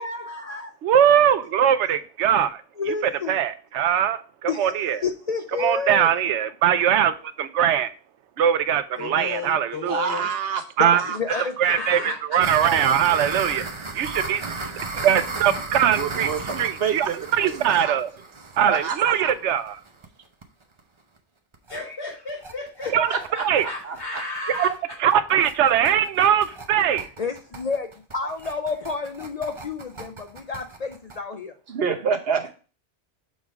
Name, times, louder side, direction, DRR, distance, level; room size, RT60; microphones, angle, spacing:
voice 1, 0.0-0.7 2.8-3.4 4.5-6.1 10.8-11.5 27.2-31.5, left 4 dB, 50° left, 7 dB, 0.5 m, -30 dB
voice 2, 0.8-2.6 3.3-5.0 5.6-7.9 8.4-10.0 10.8-11.0 11.6-13.6 13.9-14.4 15.0-16.3 16.6-17.1 17.4-18.1 18.6-19.8 22.9-23.1 23.4-23.7 24.6-24.7 25.0-27.1, right 9 dB, 90° right, 13 dB, 0.9 m, -21 dB
voice 3, 9.0-10.3 11.3-12.7 21.7-25.0, left 3 dB, 70° left, -1 dB, 4.0 m, -34 dB
voice 4, 9.9-10.6 10.9-11.2 16.0-18.0 18.7-19.3 22.9-23.2 23.6-24.2 31.7-32.5, right 6 dB, 60° right, 6 dB, 1.1 m, -27 dB
sound 1, 12.4-20.1 20.4-20.5 20.8-20.9 21.2-21.3 21.5-21.8 22.1-31.2, right 3 dB, 30° right, 0.7 m, -35 dB
6.3 x 3.6 x 4.9 m, 0.36 s
omnidirectional pair, 1.2 m